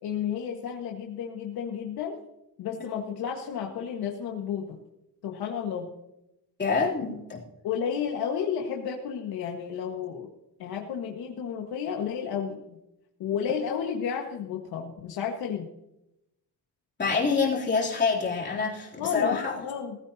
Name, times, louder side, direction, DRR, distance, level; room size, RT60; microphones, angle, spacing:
voice 1, 0.0-2.2 2.6-4.7 5.2-5.9 7.6-10.3 10.6-12.8 13.2-15.6 19.0-20.0, left 7 dB, 75° left, 1 dB, 1.7 m, -32 dB
voice 2, 6.6-7.4 17.0-19.6, left 4 dB, 30° left, -3 dB, 3.3 m, -26 dB
20.0 x 15.5 x 2.9 m, 0.87 s
cardioid pair, 155°, 38 cm